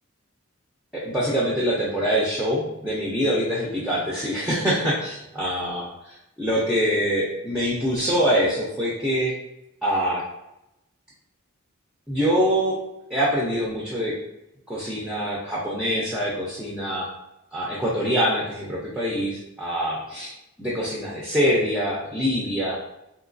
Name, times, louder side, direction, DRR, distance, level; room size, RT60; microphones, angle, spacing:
voice 1, 0.9-9.3 9.8-10.2 12.1-12.8 13.1-14.1 14.7-17.1 17.5-20.3 20.6-22.8, equal, 5° right, -6 dB, 0.5 m, -24 dB
2.9 x 2.7 x 2.6 m, 0.89 s
head